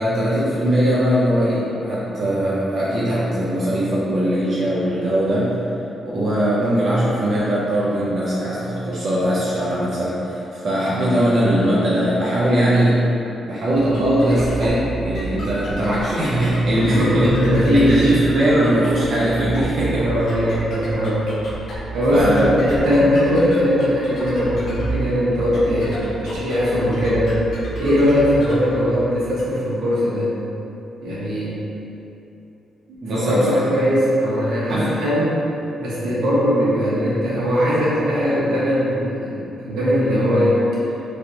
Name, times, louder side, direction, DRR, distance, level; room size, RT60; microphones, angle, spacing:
voice 1, 0.0-5.6 6.0-13.1 13.5-17.4 17.7-20.1 22.1-22.5 33.0-33.6 34.7-34.9, right 1 dB, 50° right, -8 dB, 0.5 m, -20 dB
sound 1, 13.7-29.4, right 2 dB, 60° left, 0.7 m, -31 dB
voice 2, 16.8-18.1 20.0-21.2 21.6-27.3 27.8-30.3 31.0-31.5 32.9-35.3 35.8-40.6, equal, 85° right, -8 dB, 0.9 m, -20 dB
3.2 x 2.9 x 2.6 m, 2.9 s
cardioid pair, 130°, 0 cm